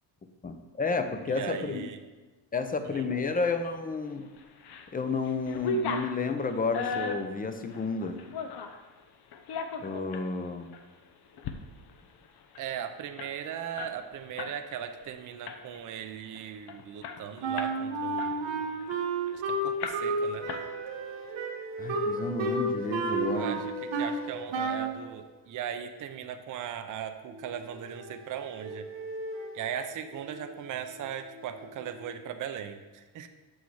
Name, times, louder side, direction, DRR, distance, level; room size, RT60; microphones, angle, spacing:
voice 1, 0.4-1.9 2.5-4.3 4.9-8.2 9.8-10.7 21.8-23.6, left 4 dB, 20° left, 8 dB, 0.6 m, -31 dB
voice 2, 1.3-2.0 2.8-3.1 12.6-18.7 19.3-20.5 23.3-28.9 29.5-33.3, right 9 dB, 45° right, 7 dB, 0.6 m, -38 dB
sound 1, 4.4-4.9 5.2-8.8 9.3-10.3 10.7-10.9 11.3-11.6 11.9-12.0 12.3-14.6 14.9-15.1 15.5-15.9 16.4-16.5 16.7-17.8 18.2-19.4 19.8-20.2 20.5-21.1, left 4 dB, 60° left, 0.8 m, -36 dB
Wind instrument woodwind instrument, 17.4-24.2 24.5-25.0, right 3 dB, 85° right, 1.2 m, -31 dB
sound 2, 20.5-25.3 27.2-32.3, equal, 30° right, 1.2 m, -43 dB
7.1 x 6.3 x 4.8 m, 1.3 s
cardioid pair, 140°, 44 cm